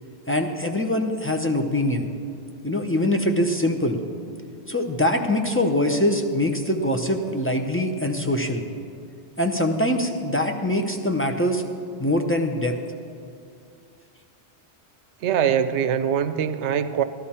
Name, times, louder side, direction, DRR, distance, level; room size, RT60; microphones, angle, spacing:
voice 1, 0.3-2.1 2.6-4.0 4.7-8.6 9.4-11.6 12.0-12.8, left 1 dB, 15° left, 4 dB, 0.5 m, -23 dB
voice 2, 15.2-17.0, right 8 dB, 90° right, 12 dB, 0.9 m, -23 dB
14.0 x 11.5 x 4.3 m, 2.3 s
omnidirectional pair, 1.1 m